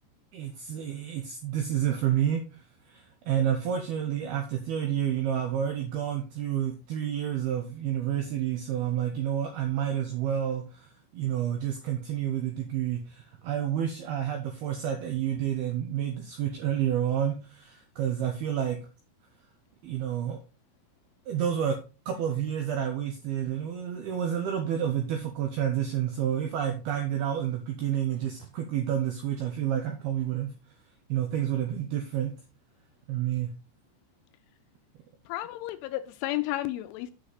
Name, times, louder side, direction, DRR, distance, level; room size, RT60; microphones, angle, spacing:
voice 1, 0.3-2.4 2.9-18.8 19.8-20.4 21.3-21.8 22.1-30.5 31.1-32.3 33.1-33.5, right 10 dB, 80° right, 2.2 m, -29 dB
voice 2, 35.3-37.1, left 15 dB, 85° left, 2.9 m, -32 dB
7.9 x 6.5 x 4.0 m
omnidirectional pair, 5.8 m